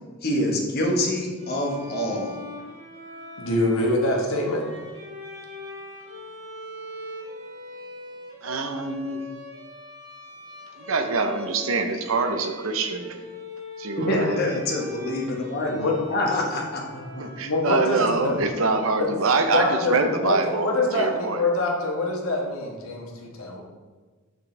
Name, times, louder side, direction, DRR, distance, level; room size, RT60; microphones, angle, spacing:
voice 1, 0.2-2.3 14.1-16.8, left 1 dB, 45° left, -1 dB, 1.3 m, -26 dB
Bowed string instrument, 1.4-19.2, left 1 dB, 55° right, 2.0 m, -42 dB
voice 2, 3.4-4.7 15.8-15.9 16.9-18.3 19.5-23.6, left 2 dB, 80° left, -1 dB, 1.3 m, -25 dB
voice 3, 8.4-9.2 10.8-13.2 13.8-14.4 17.2-21.4, right 3 dB, 75° right, 7 dB, 0.7 m, -25 dB
6.4 x 6.2 x 3.3 m, 1.4 s
head